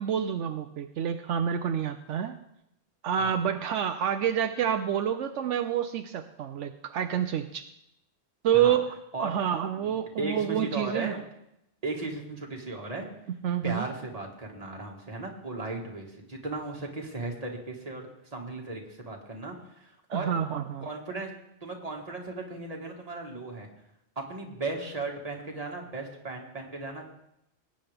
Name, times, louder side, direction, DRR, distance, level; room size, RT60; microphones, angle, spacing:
voice 1, 0.0-2.4 3.0-7.7 8.4-11.2 13.4-13.9 20.1-20.9, right 9 dB, 80° right, 8 dB, 0.9 m, -28 dB
voice 2, 10.2-11.2 11.8-13.1 13.6-20.3 20.8-21.3 21.6-23.7 24.2-27.2, right 3 dB, 30° right, 0 dB, 1.9 m, -36 dB
18.5 x 9.0 x 3.4 m, 0.81 s
omnidirectional pair, 1.2 m